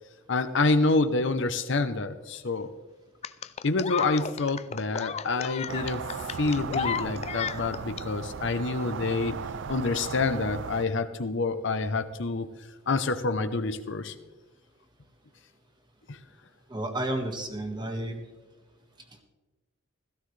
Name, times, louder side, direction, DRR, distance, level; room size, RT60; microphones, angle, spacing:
voice 1, 0.3-2.7 3.6-9.4 9.7-12.5 12.9-14.1 16.1-16.2, left 3 dB, 65° left, 10 dB, 0.7 m, -27 dB
sound 1, 3.2-8.0 9.2-9.3, left 7 dB, 30° left, 0.4 m, -33 dB
sound 2, 5.7-10.9, right 6 dB, 65° right, 0.4 m, -37 dB
voice 2, 16.7-18.3, right 1 dB, 20° right, 4 dB, 1.6 m, -31 dB
16.5 x 14.5 x 3.3 m, 1.1 s
head